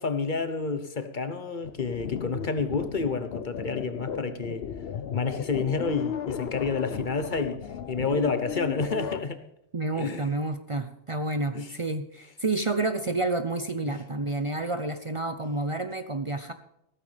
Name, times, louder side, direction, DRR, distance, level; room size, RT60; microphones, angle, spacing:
voice 1, 0.0-4.6 5.1-7.6 7.9-9.4 10.0-10.3 11.5-11.7 13.9-14.0, left 4 dB, 50° left, 1.1 m, -29 dB
sound 1, 1.6-9.2, left 8 dB, 75° left, 0.9 m, -35 dB
voice 2, 9.7-16.5, right 2 dB, 35° right, 0.7 m, -29 dB
15.5 x 14.0 x 3.4 m
omnidirectional pair, 1.1 m